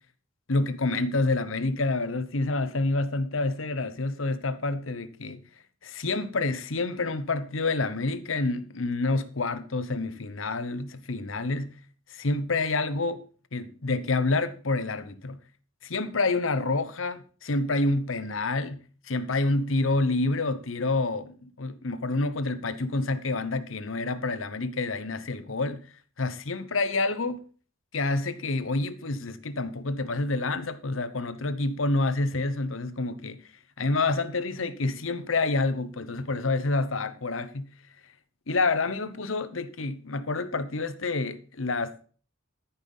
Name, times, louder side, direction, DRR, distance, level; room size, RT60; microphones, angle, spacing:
voice 1, 0.5-5.4 5.8-11.8 12.1-13.2 13.5-15.4 15.8-18.8 19.0-25.8 26.2-27.4 27.9-33.5 33.8-37.7 38.5-42.0, left 3 dB, 75° left, 1.0 m, -28 dB
13.5 x 5.7 x 5.5 m
head